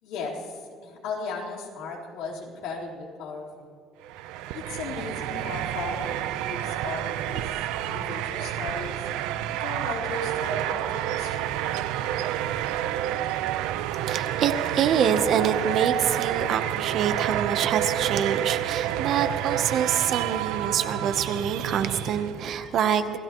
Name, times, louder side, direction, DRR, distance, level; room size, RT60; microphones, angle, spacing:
voice 1, 0.0-3.7 4.5-9.1 9.5-11.5, left 4 dB, 70° left, -2 dB, 4.0 m, -36 dB
sound 1, 4.0-22.5, right 12 dB, 90° right, 0.6 m, -29 dB
voice 2, 14.0-23.2, right 8 dB, 40° right, 9 dB, 0.8 m, -26 dB
27.5 x 16.5 x 3.0 m, 2.4 s
cardioid pair, 180°, 0 cm